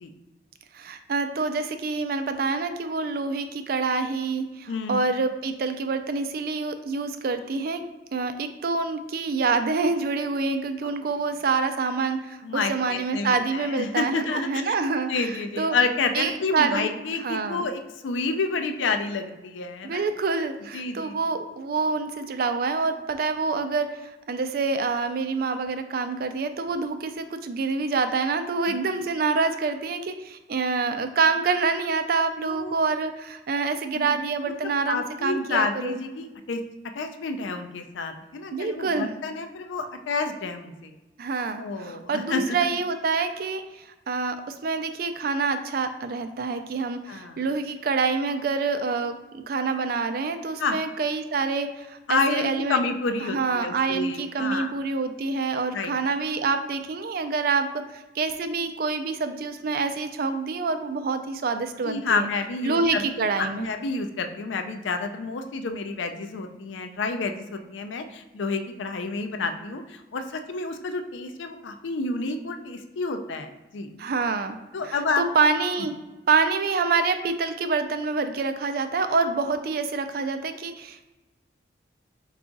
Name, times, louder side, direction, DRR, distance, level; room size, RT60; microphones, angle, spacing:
voice 1, 0.7-7.8 8.1-15.8 16.1-16.9 17.2-17.7 19.8-36.0 38.5-39.1 41.2-52.8 53.2-62.3 62.6-63.7 74.0-74.6 74.9-75.9 76.3-81.1, right 4 dB, 55° right, 9 dB, 0.4 m, -26 dB
voice 2, 4.7-5.0 12.4-14.7 15.1-20.1 20.7-21.1 28.7-28.8 32.4-32.9 33.9-36.6 36.9-40.9 41.6-42.7 47.1-47.4 50.6-50.8 52.1-54.7 55.7-55.9 61.8-63.0 63.4-73.9 74.7-75.2 79.4-79.6, left 3 dB, 90° left, 7 dB, 0.4 m, -29 dB
4.6 x 2.4 x 3.9 m, 1.1 s
head